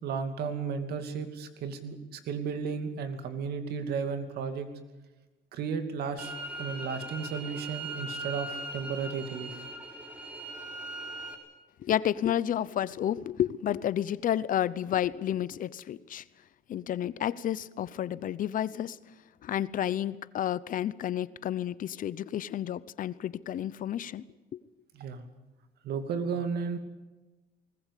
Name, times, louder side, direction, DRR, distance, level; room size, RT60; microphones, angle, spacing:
voice 1, 0.0-4.7 5.5-6.3 6.6-9.6 24.9-25.2 25.8-26.8, right 6 dB, 70° right, 8 dB, 2.6 m, -34 dB
sound 1, 6.2-11.3, right 2 dB, 10° right, 4.5 m, -40 dB
voice 2, 11.8-16.2 16.7-19.0 19.4-24.2 24.5-24.6, left 11 dB, 55° left, 18 dB, 0.8 m, -31 dB
20.5 x 20.0 x 8.4 m, 1.2 s
cardioid pair, 110°, 17 cm